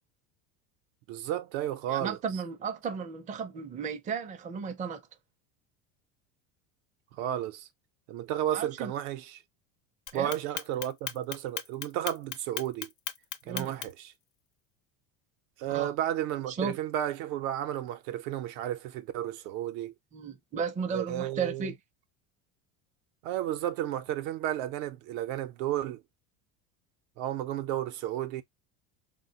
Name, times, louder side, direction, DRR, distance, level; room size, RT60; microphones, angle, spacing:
voice 1, 1.1-2.2 7.1-7.7 8.1-9.4 10.1-12.9 13.5-14.1 15.6-19.9 20.9-21.7 23.2-26.0 27.2-28.4, right 12 dB, 75° right, 0.7 m, -33 dB
voice 2, 1.9-5.0 8.5-8.9 10.1-10.3 13.5-13.8 15.7-15.9 16.5-16.8 20.1-21.7, right 6 dB, 20° right, 0.4 m, -34 dB
Clock, 10.1-14.1, left 10 dB, 50° left, 0.6 m, -36 dB
3.3 x 2.2 x 2.6 m
supercardioid pair, 110°, 40 cm